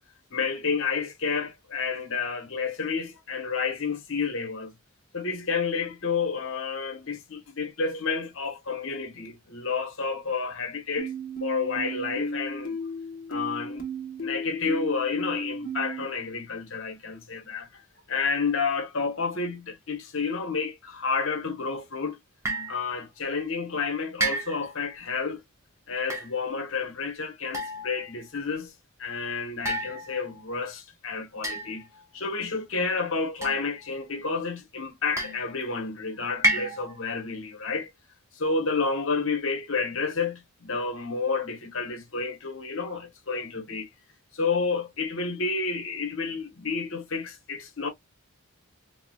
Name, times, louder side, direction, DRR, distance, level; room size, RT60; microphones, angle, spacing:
voice 1, 0.3-4.7 5.1-11.1 11.4-12.8 13.3-13.8 14.2-17.8 18.1-22.2 22.7-25.4 25.9-28.7 29.0-31.9 32.1-37.9 38.3-43.9 44.3-47.9, left 4 dB, 60° left, 1.1 m, -30 dB
sound 1, 11.0-16.0, right 1 dB, 40° left, 1.2 m, -34 dB
sound 2, 22.5-22.8 24.2-24.8 26.0-26.3 27.5-28.1 29.7-30.4 31.4-32.0 33.4-34.0 35.2-35.7 36.4-37.1, right 1 dB, 15° right, 1.1 m, -30 dB
4.7 x 2.1 x 2.3 m
head